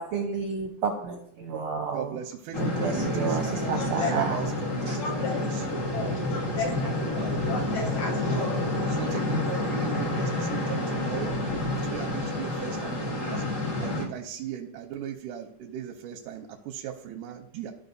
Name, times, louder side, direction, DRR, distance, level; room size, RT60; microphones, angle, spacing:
voice 1, 0.0-2.2 2.6-4.4 4.9-5.0, right 5 dB, 70° right, 3 dB, 1.3 m, -31 dB
voice 2, 1.9-5.8 6.9-8.5 8.9-11.4 11.7-13.4 13.8-17.7, right 9 dB, 90° right, 1 dB, 2.2 m, -38 dB
sound 1, 2.5-14.1, left 1 dB, 50° left, 0.9 m, -29 dB
voice 3, 3.7-4.1 5.0-8.7, left 4 dB, 70° left, 1 dB, 2.7 m, -35 dB
14.5 x 5.3 x 2.7 m, 0.68 s
omnidirectional pair, 3.5 m